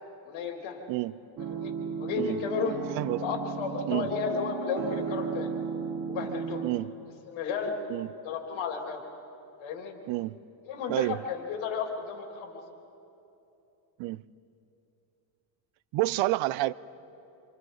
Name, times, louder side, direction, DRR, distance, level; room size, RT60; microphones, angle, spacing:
voice 1, 0.2-0.8 1.5-1.7 2.0-2.8 3.2-5.5 6.1-6.7 7.3-7.7 8.2-9.0 9.6-9.9 10.7-12.6, left 6 dB, 70° left, 3.2 m, -33 dB
sound 1, 1.4-6.7, right 6 dB, 50° right, 1.8 m, -35 dB
voice 2, 10.1-10.4 10.9-11.2 14.0-14.2 15.9-16.7, right 18 dB, 70° right, 0.6 m, -28 dB
27.5 x 26.5 x 4.1 m
cardioid pair, 120°, 47 cm